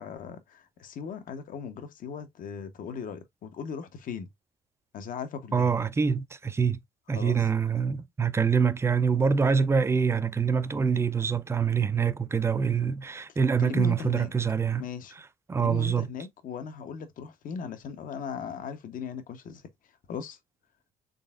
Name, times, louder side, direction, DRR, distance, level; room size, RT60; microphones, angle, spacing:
voice 1, 0.0-4.3 4.9-5.7 7.1-7.5 13.6-14.3 14.8-15.1 15.6-19.6 20.1-20.4, left 6 dB, 55° left, 0.8 m, -38 dB
voice 2, 5.5-6.8 7.1-14.8 15.5-16.1, right 6 dB, 15° right, 0.4 m, -25 dB
3.9 x 3.4 x 2.3 m
cardioid pair, 110°, 17 cm